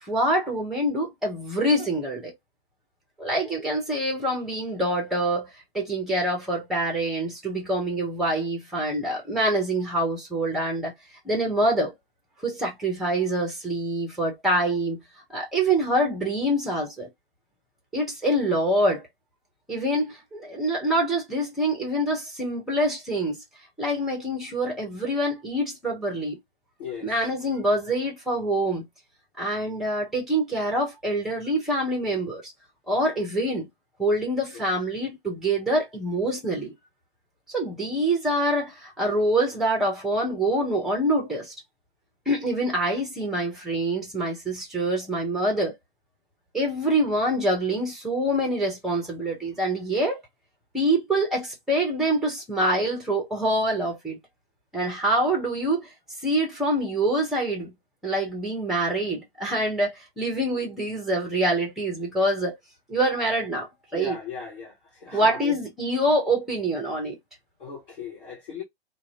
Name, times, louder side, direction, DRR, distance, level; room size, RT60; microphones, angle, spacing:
voice 1, 0.0-2.3 3.2-5.5 5.7-10.9 11.2-11.9 12.4-15.0 15.3-17.1 17.9-19.0 19.7-23.4 23.8-26.4 27.0-28.8 29.4-32.4 32.9-33.7 34.0-36.7 37.5-41.5 42.3-45.8 46.5-50.2 50.7-54.2 54.7-55.9 56.2-57.7 58.0-62.6 62.9-63.7 63.9-64.2 65.1-67.2, right 1 dB, ahead, 0.5 m, -25 dB
voice 2, 26.8-27.1 34.5-34.6 63.9-64.7 65.0-65.5 67.6-68.6, left 5 dB, 55° left, 1.4 m, -36 dB
2.5 x 2.2 x 2.7 m
figure-of-eight pair, 120°, 31 cm